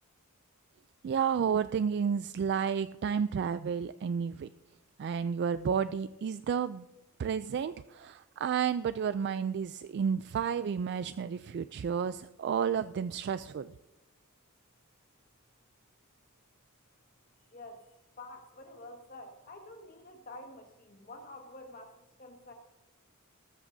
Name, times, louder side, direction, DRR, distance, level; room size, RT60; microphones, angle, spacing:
voice 1, 1.0-4.5 5.0-6.8 7.2-13.7, right 7 dB, 50° right, 13 dB, 0.3 m, -31 dB
voice 2, 17.5-17.9 18.2-22.5, left 2 dB, 40° left, 3 dB, 1.7 m, -48 dB
19.5 x 13.5 x 2.7 m, 1.0 s
head